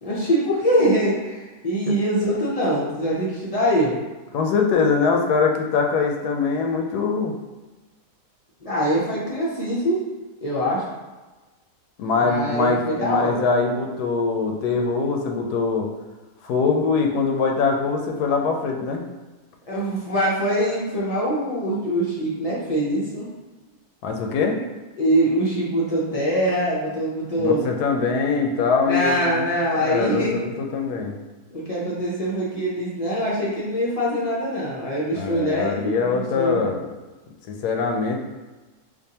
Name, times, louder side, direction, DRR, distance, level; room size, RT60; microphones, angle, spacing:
voice 1, 0.0-4.0 8.6-10.0 10.4-10.9 12.2-13.5 19.7-23.3 25.0-27.7 28.8-30.5 31.5-36.6, equal, 65° left, -6 dB, 0.3 m, -23 dB
voice 2, 4.3-7.3 12.0-15.9 16.4-19.0 24.0-24.6 27.4-31.2 35.2-36.9 37.5-38.2, left 4 dB, 85° left, 2 dB, 1.1 m, -23 dB
4.5 x 2.5 x 2.8 m, 1.2 s
omnidirectional pair, 1.6 m